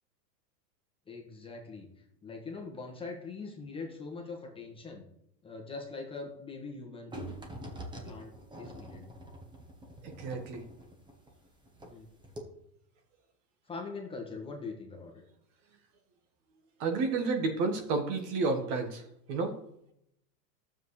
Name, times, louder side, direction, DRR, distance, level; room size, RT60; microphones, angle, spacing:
voice 1, 1.1-1.9 2.2-5.0 5.4-7.1 8.0-9.0 11.8-12.1 13.6-15.1, left 4 dB, 10° left, 0 dB, 1.4 m, -42 dB
sound 1, 7.1-12.0 12.2-12.4, right 1 dB, 10° right, 1.1 m, -45 dB
voice 2, 10.2-10.6 16.8-19.0 19.3-19.6, right 3 dB, 45° right, 5 dB, 1.6 m, -30 dB
12.0 x 7.4 x 3.3 m, 0.76 s
supercardioid pair, 135°, 50 cm